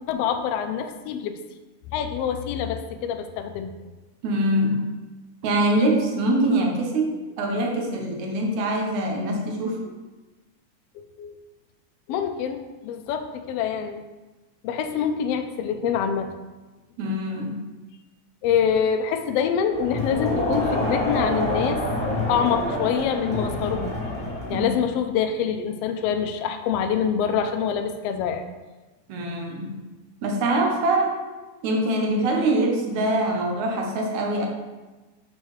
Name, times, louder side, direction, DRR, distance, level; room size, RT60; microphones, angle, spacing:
voice 1, 0.1-1.4 1.9-3.9 10.9-11.3 12.1-14.0 14.6-16.3 18.4-21.8 22.3-24.0 24.5-28.4, left 7 dB, 90° left, 6 dB, 1.4 m, -25 dB
voice 2, 4.2-4.8 5.4-9.8 17.0-17.6 24.5-24.7 29.1-29.7 30.2-31.2 31.6-34.5, right 1 dB, 75° right, 2 dB, 2.2 m, -24 dB
Crowd, 19.7-24.9, left 1 dB, 10° left, 0.4 m, -27 dB
6.4 x 6.2 x 3.2 m, 1.2 s
omnidirectional pair, 3.5 m